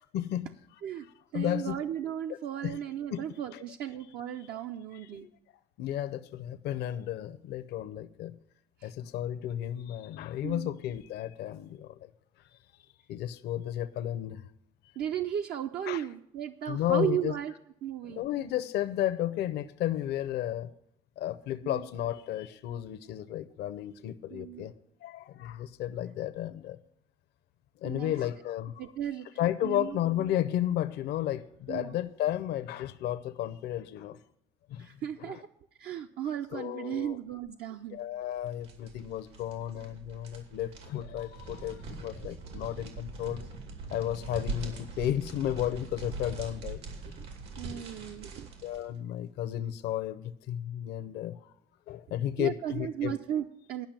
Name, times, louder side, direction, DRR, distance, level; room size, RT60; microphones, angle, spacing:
voice 1, 0.1-0.5 1.3-1.8 2.6-2.8 3.1-3.2 3.5-3.6 5.2-5.3 5.8-8.3 8.8-12.1 12.5-12.6 13.1-14.4 15.9-16.0 16.7-17.3 18.0-20.7 21.2-24.7 25.0-26.8 27.8-28.7 29.4-34.2 34.7-34.9 35.2-35.4 36.5-37.2 37.9-43.4 43.9-46.8 48.6-51.4 51.9-53.1, left 12 dB, 75° left, 11 dB, 0.6 m, -33 dB
voice 2, 1.3-5.3 8.8-8.9 10.4-10.7 15.0-17.5 17.8-18.3 21.6-21.8 24.3-24.7 27.8-28.1 28.8-29.3 29.6-30.0 31.7-32.0 34.8-35.4 35.8-38.0 47.2-47.3 47.6-48.5 52.4-53.9, right 10 dB, 70° right, 5 dB, 0.6 m, -35 dB
sound 1, 38.2-48.9, right 3 dB, 90° right, 2.5 m, -42 dB
10.5 x 5.8 x 8.7 m, 0.75 s
cardioid pair, 110°, 17 cm